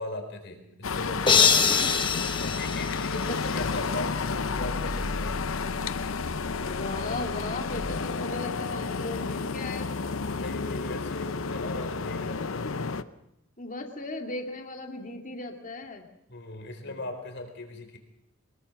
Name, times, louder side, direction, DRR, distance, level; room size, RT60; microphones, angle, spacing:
voice 1, 0.0-1.7 2.4-5.4 10.2-12.7 16.3-18.0, left 2 dB, 55° left, 6 dB, 4.1 m, -38 dB
sound 1, 0.8-13.0, left 4 dB, 70° left, 0.8 m, -31 dB
sound 2, 1.3-3.6, left 6 dB, 25° left, 1.2 m, -24 dB
voice 2, 1.4-2.2 3.3-3.4 6.6-9.9 12.6-12.8 13.6-16.0 16.8-17.0, left 2 dB, 40° left, 3 dB, 2.4 m, -37 dB
23.5 x 21.5 x 5.9 m, 0.83 s
head